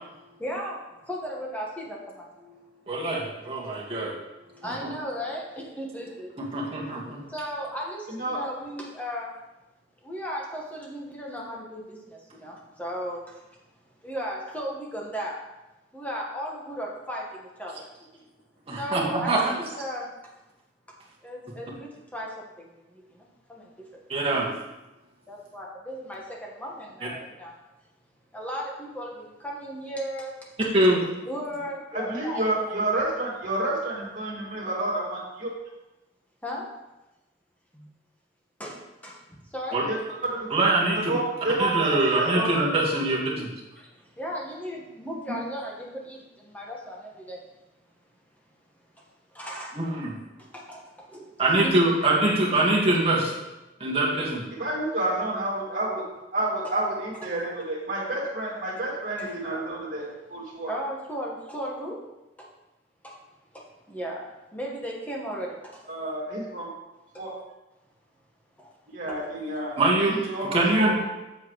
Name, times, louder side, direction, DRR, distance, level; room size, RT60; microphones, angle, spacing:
voice 1, 0.4-2.3 3.0-3.2 4.5-6.3 7.3-9.4 10.0-13.4 14.0-15.4 15.9-17.9 18.8-19.3 19.6-20.1 21.2-24.0 25.3-27.5 28.3-30.5 31.2-32.6 36.4-36.7 37.7-37.9 38.6-39.2 39.5-39.8 43.8-47.4 48.9-49.0 49.3-49.8 50.4-51.3 51.6-51.7 59.2-59.3 60.7-62.0 62.4-62.5 63.0-63.2 63.5-65.8 67.1-67.2 68.6-68.8 69.1-69.2, equal, 10° left, -2 dB, 1.5 m, -36 dB
voice 2, 2.9-4.1 4.6-4.9 6.4-7.2 18.7-19.6 24.1-24.5 30.7-31.0 39.7-39.8 40.5-41.1 41.6-43.5 49.7-50.2 51.4-53.3 53.8-54.5 69.8-70.2 70.5-70.9, right 2 dB, 30° right, -4 dB, 1.9 m, -23 dB
voice 3, 8.1-8.4 31.9-35.5 39.8-40.0 40.3-40.5 40.9-42.7 54.6-56.0 56.3-60.7 65.9-66.7 67.2-67.3 68.9-70.9, right 2 dB, 45° right, -4 dB, 2.5 m, -29 dB
7.8 x 7.7 x 3.2 m, 1.0 s
head